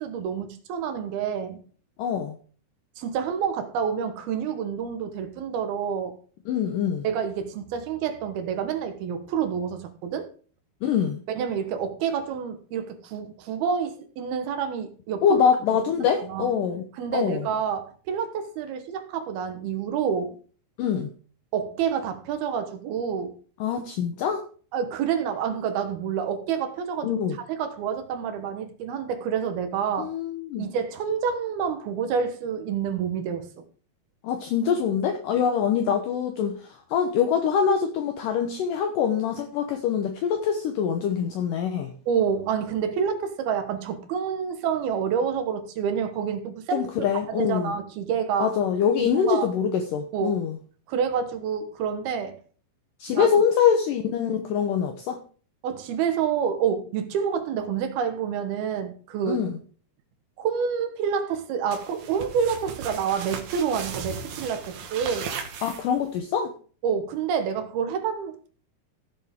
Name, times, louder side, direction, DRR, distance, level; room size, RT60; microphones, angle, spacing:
voice 1, 0.0-1.6 3.0-6.2 7.0-10.3 11.3-15.4 16.2-16.5 17.0-20.4 21.5-23.4 24.7-27.2 27.5-30.1 30.6-33.5 42.1-46.9 47.3-48.5 49.0-49.5 50.1-50.4 50.9-52.4 53.1-53.4 55.6-59.4 60.4-65.3 66.8-68.5, right 7 dB, 75° right, 3.2 m, -28 dB
voice 2, 2.0-2.4 6.5-7.1 10.8-11.2 15.2-16.8 17.1-17.5 20.8-21.1 23.6-24.4 27.0-27.4 30.0-30.7 34.2-41.9 46.7-47.8 48.4-50.6 53.0-55.2 59.3-59.6 65.6-66.5, left 7 dB, 70° left, 2.3 m, -24 dB
sound 1, 61.7-66.2, right 6 dB, 60° right, 2.2 m, -37 dB
15.5 x 7.3 x 3.6 m
omnidirectional pair, 4.5 m